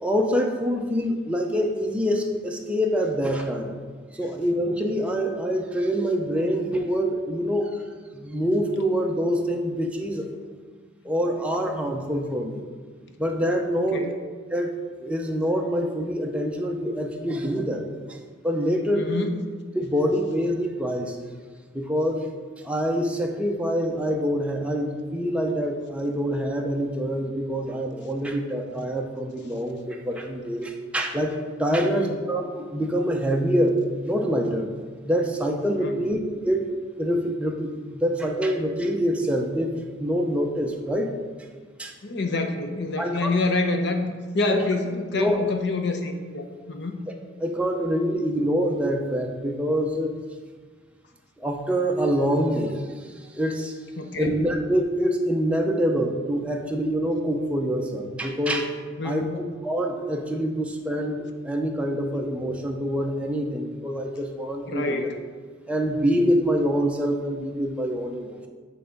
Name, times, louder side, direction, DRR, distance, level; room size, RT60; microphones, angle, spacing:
voice 1, 0.0-3.7 4.1-7.8 8.1-10.3 11.0-12.6 13.2-14.1 14.5-18.2 18.4-19.1 19.7-21.2 21.7-22.2 22.6-33.8 34.0-34.7 35.0-36.2 36.4-36.7 37.0-39.7 40.0-41.1 41.8-41.9 43.0-43.3 44.5-44.6 45.2-45.4 47.4-50.1 51.4-52.8 53.3-53.7 54.2-58.7 59.0-61.1 61.4-65.1 65.7-68.5, equal, 5° right, 1 dB, 0.6 m, -25 dB
voice 2, 18.9-19.3 31.7-32.1 35.8-36.0 42.0-47.0 54.0-54.4 59.0-59.4 64.7-65.1, left 3 dB, 60° left, 5 dB, 0.8 m, -27 dB
9.0 x 3.4 x 5.3 m, 1.5 s
head